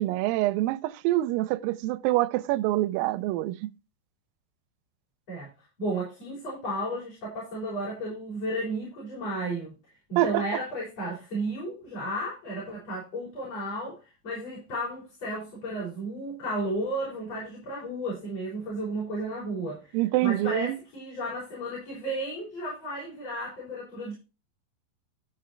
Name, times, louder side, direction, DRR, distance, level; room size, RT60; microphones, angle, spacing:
voice 1, 0.0-3.7 10.2-10.4 19.9-20.8, right 17 dB, 80° right, 2.3 m, -26 dB
voice 2, 5.3-9.7 10.1-24.1, right 1 dB, 40° left, 6.3 m, -33 dB
14.0 x 5.4 x 4.4 m
omnidirectional pair, 4.3 m